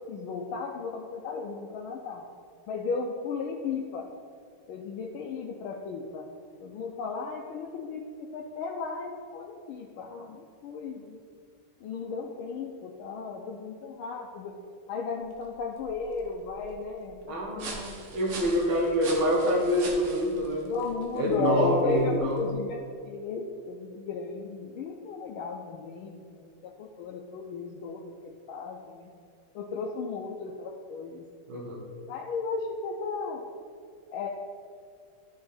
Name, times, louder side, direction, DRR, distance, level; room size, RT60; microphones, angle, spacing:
voice 1, 0.1-2.3 2.7-4.1 4.7-6.3 6.6-11.2 11.8-14.6 14.9-17.8 20.6-29.1 29.5-31.3 32.1-33.5 34.1-34.3, left 4 dB, 80° left, 0 dB, 1.5 m, -35 dB
sound 1, 15.2-22.6, right 3 dB, 85° right, 2.1 m, -44 dB
voice 2, 17.3-20.7 21.1-22.4 31.5-31.8, equal, 70° right, -3 dB, 2.4 m, -26 dB
13.0 x 4.8 x 4.3 m, 2.3 s
omnidirectional pair, 2.4 m